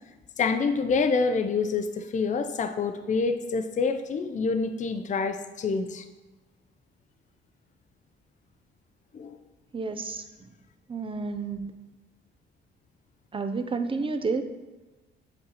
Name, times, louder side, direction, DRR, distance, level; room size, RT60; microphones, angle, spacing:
voice 1, 0.4-6.0 9.1-9.4, left 4 dB, 40° left, 8 dB, 0.6 m, -27 dB
voice 2, 9.7-10.5 10.9-11.7 13.3-14.4, right 4 dB, 25° right, 8 dB, 0.7 m, -30 dB
8.6 x 4.6 x 4.1 m, 1.1 s
cardioid pair, 90°, 20 cm